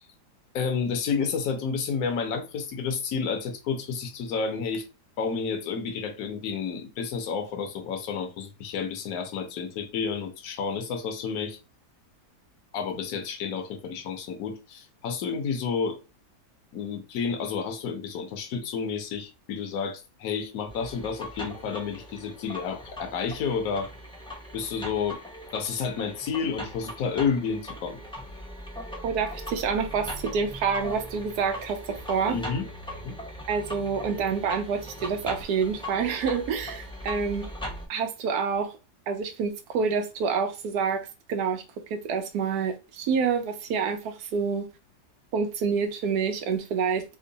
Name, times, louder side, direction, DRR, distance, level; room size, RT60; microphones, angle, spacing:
voice 1, 0.5-4.8 5.2-11.6 12.7-16.0 16.7-23.9 24.5-25.2 25.5-28.0 32.3-32.6 32.9-33.2, left 6 dB, 65° left, 1.2 m, -30 dB
sound 1, 20.7-37.9, equal, 5° left, 0.4 m, -40 dB
voice 2, 29.0-32.4 33.5-37.5 37.9-38.7 39.1-41.6 41.9-44.7 45.3-47.0, right 6 dB, 75° right, 1.2 m, -27 dB
3.6 x 2.1 x 3.9 m
omnidirectional pair, 1.7 m